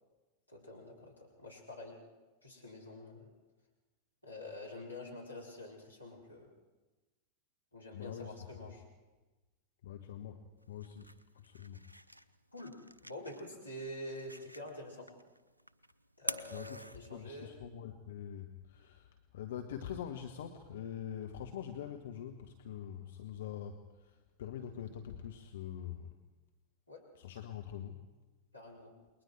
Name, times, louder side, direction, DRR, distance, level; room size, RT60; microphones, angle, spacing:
voice 1, 0.5-2.0 2.4-3.3 4.2-6.5 7.7-8.8 12.5-15.1 16.2-17.5 26.9-27.0 28.5-28.9, left 1 dB, 85° left, -3 dB, 4.5 m, -47 dB
voice 2, 7.9-8.5 9.8-11.8 16.5-16.8 17.1-26.2 27.1-28.0, left 9 dB, 60° left, 5 dB, 1.3 m, -44 dB
sound 1, 10.6-17.6, right 1 dB, 85° right, 0.6 m, -48 dB
29.0 x 21.5 x 4.6 m, 1.2 s
figure-of-eight pair, 90°, 0 cm